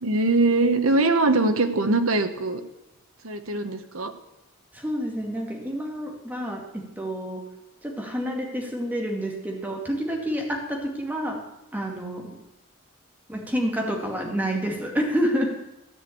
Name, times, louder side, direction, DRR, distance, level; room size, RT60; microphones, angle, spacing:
voice 1, 0.0-2.6 3.2-4.1, right 2 dB, 80° right, 8 dB, 1.2 m, -22 dB
voice 2, 4.7-7.4 7.8-11.4 11.7-12.4 13.3-15.5, equal, 10° right, 0 dB, 2.2 m, -28 dB
14.0 x 6.3 x 8.6 m, 0.91 s
head